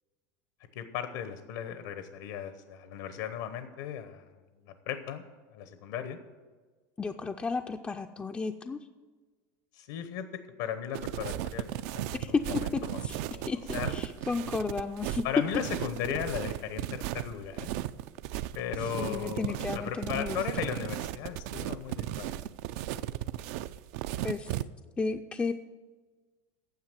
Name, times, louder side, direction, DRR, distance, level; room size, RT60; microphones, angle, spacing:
voice 1, 0.7-4.3 4.7-5.2 5.5-6.2 9.7-10.2 10.6-11.7 11.9-13.0 13.3-13.9 15.2-17.7 18.5-22.4, left 9 dB, 80° left, 9 dB, 1.0 m, -36 dB
voice 2, 7.0-8.9 12.2-13.2 13.5-15.2 18.8-20.4 24.2-24.5 25.0-25.5, left 4 dB, 15° left, 4 dB, 0.4 m, -33 dB
sound 1, 10.9-24.6, right 13 dB, 65° right, 0.4 m, -36 dB
9.6 x 7.3 x 9.0 m, 1.3 s
supercardioid pair, 145°, 9 cm